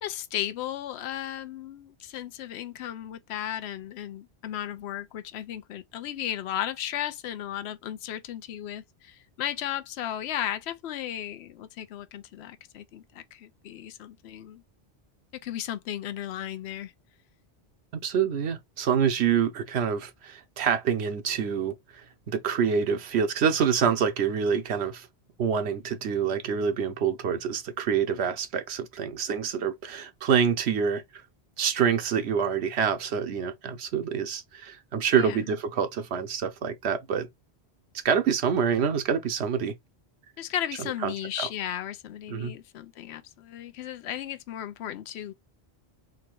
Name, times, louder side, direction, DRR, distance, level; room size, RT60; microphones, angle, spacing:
voice 1, 0.0-14.6 15.4-16.9 35.2-35.4 40.4-45.3, left 11 dB, 80° left, 0.8 m, -35 dB
voice 2, 18.0-25.1 25.4-31.0 31.6-37.3 38.0-39.7 41.0-41.1 41.4-41.5 42.3-42.5, right 7 dB, 80° right, 1.0 m, -26 dB
3.8 x 2.3 x 4.5 m
omnidirectional pair, 1.1 m